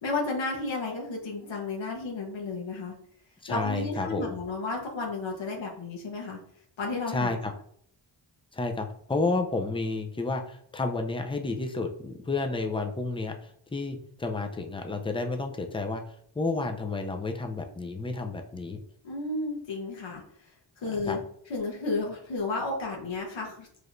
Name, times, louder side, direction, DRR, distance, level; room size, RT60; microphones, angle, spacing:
voice 1, 0.0-2.9 3.5-6.4 6.8-7.5 19.0-20.2 20.8-21.2 21.5-23.7, left 3 dB, 80° left, -1 dB, 1.2 m, -32 dB
voice 2, 3.4-4.4 7.1-7.5 8.5-16.0 16.4-18.8 21.1-21.2, left 3 dB, 10° left, 5 dB, 0.5 m, -31 dB
4.7 x 3.2 x 2.5 m, 0.65 s
wide cardioid pair, 90°, 46 cm